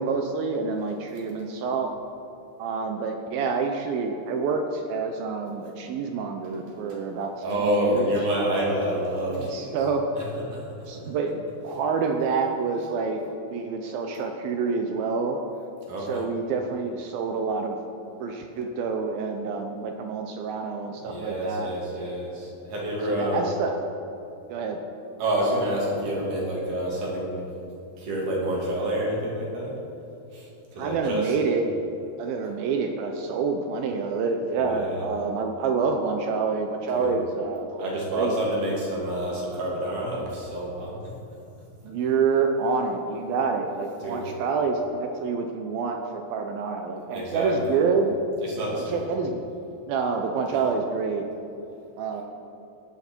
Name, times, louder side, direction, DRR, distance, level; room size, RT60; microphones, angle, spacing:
voice 1, 0.0-1.9 2.6-8.1 9.3-10.0 10.9-13.2 13.5-15.4 16.1-17.8 18.2-21.7 23.1-23.7 24.5-24.8 30.8-31.6 32.2-38.4 41.8-48.2 48.7-49.4 49.9-51.2 52.0-52.2, right 5 dB, 80° right, 4 dB, 2.1 m, -27 dB
voice 2, 7.4-9.7 10.2-10.3 10.5-10.6 15.9-16.2 21.0-23.5 25.2-27.4 28.0-29.7 30.3-31.3 34.6-35.1 36.9-37.1 37.8-40.9 44.0-44.3 47.1-47.8 48.4-49.1, right 1 dB, 50° right, -4 dB, 3.8 m, -28 dB
15.5 x 11.0 x 4.5 m, 2.8 s
omnidirectional pair, 5.1 m